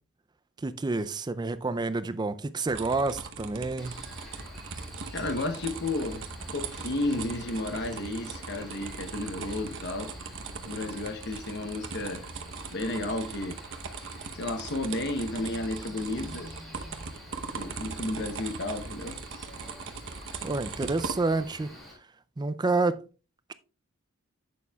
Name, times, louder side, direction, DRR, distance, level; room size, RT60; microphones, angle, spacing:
voice 1, 0.6-3.9 20.4-21.7 22.4-23.0, right 3 dB, 20° right, 0.4 m, -28 dB
sound 1, 2.7-21.4, right 5 dB, 60° right, 0.9 m, -40 dB
Cricket, 3.8-21.9, equal, ahead, 4.8 m, -47 dB
voice 2, 5.1-6.2 6.5-10.1 10.7-12.3 12.7-13.6 14.3-16.5 17.6-19.2, left 2 dB, 50° left, 0.8 m, -32 dB
11.0 x 8.3 x 2.3 m
head